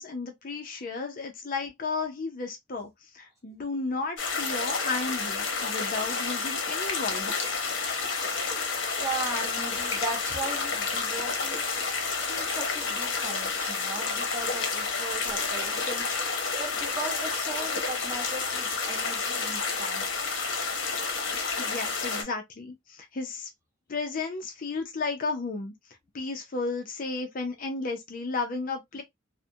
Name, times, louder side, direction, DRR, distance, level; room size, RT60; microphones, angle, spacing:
voice 1, 0.0-7.3 21.6-23.5 23.9-25.7 26.1-29.0, left 3 dB, 45° left, 0.5 m, -33 dB
sound 1, 4.2-22.2, left 4 dB, 75° left, 0.8 m, -30 dB
voice 2, 9.0-11.7 12.2-16.1 16.6-20.1, right 2 dB, 15° right, 1.0 m, -37 dB
2.4 x 2.1 x 2.6 m
head